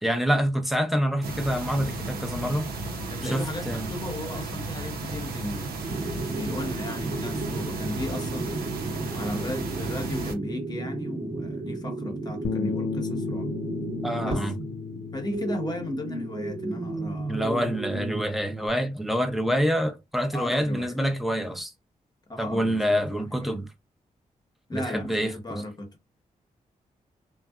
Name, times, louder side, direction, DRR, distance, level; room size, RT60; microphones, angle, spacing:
voice 1, 0.0-2.7 3.2-3.9 14.0-14.6 17.3-21.7 22.4-23.7 24.7-25.6, equal, ahead, 0.6 m, -26 dB
sound 1, 1.2-10.3, right 2 dB, 85° right, 0.7 m, -34 dB
voice 2, 3.1-5.7 6.3-8.5 9.1-13.5 14.2-14.4 15.1-17.5 20.3-21.0 22.3-22.8 23.1-23.5 24.7-25.9, left 1 dB, 25° left, 1.0 m, -35 dB
sound 2, 5.8-18.2, right 2 dB, 40° right, 1.1 m, -34 dB
Bass guitar, 12.4-18.7, left 6 dB, 55° left, 0.4 m, -36 dB
2.5 x 2.2 x 2.3 m
cardioid pair, 55°, 15 cm